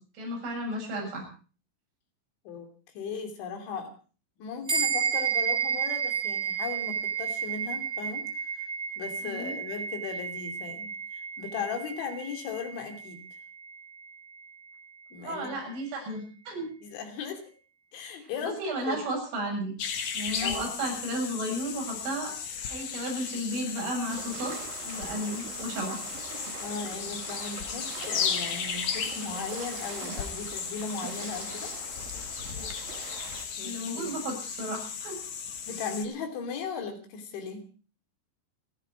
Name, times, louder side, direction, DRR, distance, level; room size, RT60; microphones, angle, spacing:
voice 1, 0.2-1.2 9.2-9.5 15.2-16.7 18.2-19.7 20.1-22.3 22.7-24.5 24.8-26.0 32.6-32.7 33.6-35.2, right 1 dB, 85° right, -1 dB, 9.8 m, -33 dB
voice 2, 2.9-3.9 4.4-8.7 9.0-13.2 15.1-15.5 16.8-17.4 17.9-19.0 20.4-20.7 26.6-31.7 33.6-34.1 35.7-37.6, left 5 dB, 70° left, 5 dB, 5.2 m, -37 dB
sound 1, 4.7-14.4, right 7 dB, 10° right, 7.3 m, -32 dB
sound 2, 19.8-36.0, left 7 dB, 55° left, 2.1 m, -35 dB
sound 3, 24.1-33.5, right 8 dB, 60° right, 3.0 m, -43 dB
29.5 x 10.0 x 4.6 m, 0.39 s
omnidirectional pair, 5.5 m